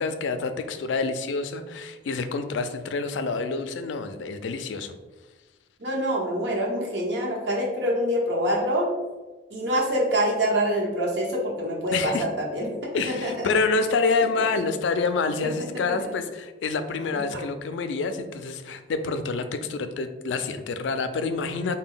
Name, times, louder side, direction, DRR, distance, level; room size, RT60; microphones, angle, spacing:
voice 1, 0.0-4.9 11.9-12.2 12.9-21.8, left 4 dB, 80° left, 9 dB, 0.4 m, -27 dB
voice 2, 5.8-8.9 9.5-13.5 14.2-14.3 14.5-14.6 15.4-16.1 17.3-17.4, equal, 70° right, -2 dB, 0.9 m, -26 dB
4.2 x 2.2 x 3.7 m, 1.2 s
head